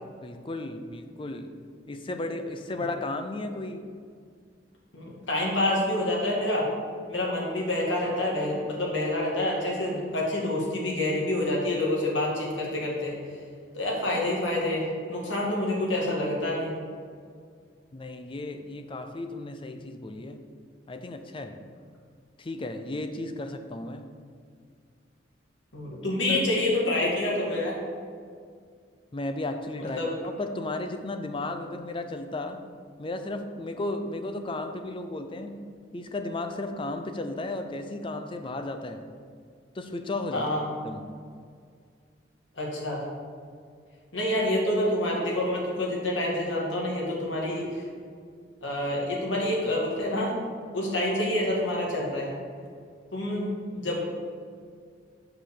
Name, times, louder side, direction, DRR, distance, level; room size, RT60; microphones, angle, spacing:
voice 1, 0.2-1.5 1.9-3.9 17.9-20.4 20.9-21.6 22.4-24.1 26.3-26.4 29.1-32.6 33.0-35.6 35.9-39.0 39.7-40.5 40.8-41.1, left 2 dB, 25° left, 7 dB, 0.5 m, -34 dB
voice 2, 4.9-6.7 7.1-13.1 13.7-16.7 25.7-27.8 29.9-30.1 40.3-40.6 42.6-43.0 44.1-47.8 48.6-50.3 50.7-52.3 53.1-54.0, left 1 dB, 80° left, -3 dB, 2.0 m, -27 dB
5.9 x 5.5 x 6.5 m, 2.1 s
head